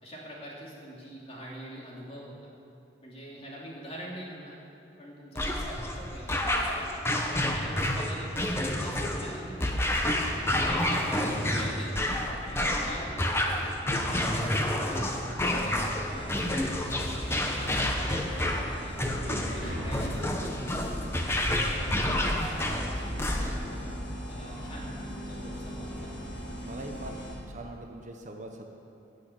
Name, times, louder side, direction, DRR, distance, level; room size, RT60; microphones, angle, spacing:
voice 1, 0.0-2.5 3.0-4.6 5.0-6.6 7.5-9.9 10.3-12.1 12.4-14.3 14.8-16.8 17.3-20.6 21.1-23.9 24.3-26.3, equal, 35° left, -4 dB, 2.8 m, -44 dB
sound 1, 5.3-23.7, left 1 dB, 15° left, 1.0 m, -29 dB
sound 2, 16.0-27.4, equal, 80° left, 3.2 m, -39 dB
voice 2, 26.7-27.2 27.5-28.7, right 2 dB, 40° right, 3 dB, 1.0 m, -42 dB
16.0 x 6.5 x 8.5 m, 2.7 s
head